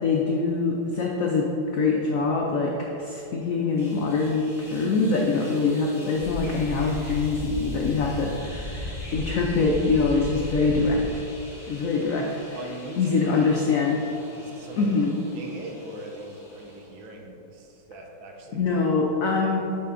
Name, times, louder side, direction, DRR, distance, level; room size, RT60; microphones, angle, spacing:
voice 1, 0.0-11.3 11.7-12.2 13.0-14.0 14.8-15.2 18.5-19.6, left 4 dB, 80° left, -1 dB, 0.7 m, -24 dB
sound 1, 3.8-17.1, equal, ahead, 0.9 m, -47 dB
Wind / Subway metro underground, 6.1-11.2, left 1 dB, 35° left, 1.2 m, -35 dB
voice 2, 12.5-13.2 14.4-14.9 15.3-18.6, right 1 dB, 80° right, 1 dB, 1.6 m, -40 dB
8.4 x 4.1 x 3.7 m, 3.0 s
omnidirectional pair, 2.1 m